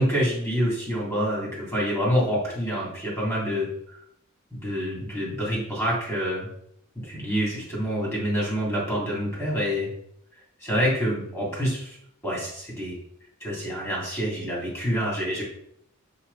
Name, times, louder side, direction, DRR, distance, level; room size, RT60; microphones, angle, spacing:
voice 1, 0.0-4.0 4.5-6.5 7.0-9.9 10.6-12.0 12.2-13.0 13.4-15.4, equal, 10° left, -5 dB, 3.2 m, -27 dB
7.1 x 6.6 x 4.2 m, 0.71 s
head